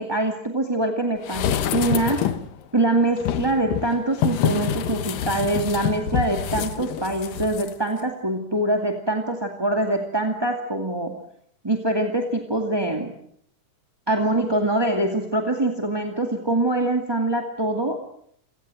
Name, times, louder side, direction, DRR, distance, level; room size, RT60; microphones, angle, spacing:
voice 1, 0.0-2.3 2.7-11.2 11.6-13.1 14.1-18.1, right 2 dB, 10° right, 3 dB, 1.5 m, -24 dB
sound 1, 1.2-2.5 3.2-7.7 8.0-8.1, left 9 dB, 85° left, 2.9 m, -26 dB
28.5 x 17.5 x 7.8 m, 0.69 s
omnidirectional pair, 3.8 m